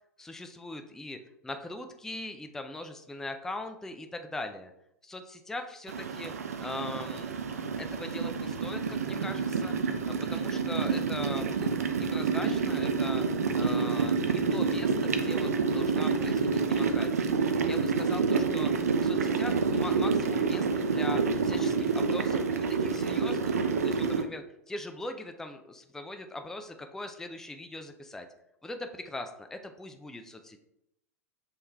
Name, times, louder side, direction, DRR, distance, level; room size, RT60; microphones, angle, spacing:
voice 1, 0.2-4.7 5.0-7.3 7.8-9.7 10.0-13.2 13.5-17.3 17.7-18.7 19.0-28.3 28.6-30.6, left 2 dB, 5° left, 6 dB, 0.4 m, -41 dB
sound 1, 5.9-24.2, right 5 dB, 75° right, 0.4 m, -28 dB
7.2 x 3.1 x 2.3 m, 0.82 s
figure-of-eight pair, 90°, 8 cm